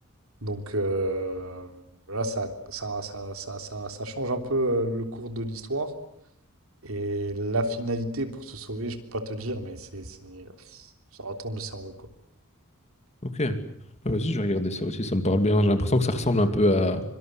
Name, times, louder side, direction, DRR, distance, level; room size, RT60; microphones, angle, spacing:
voice 1, 0.4-1.7 2.1-5.9 6.8-10.9 11.2-11.9, right 1 dB, 70° right, 7 dB, 3.4 m, -31 dB
voice 2, 13.2-13.6 14.0-17.0, left 1 dB, 30° left, 8 dB, 2.6 m, -23 dB
25.5 x 25.0 x 7.9 m, 0.74 s
head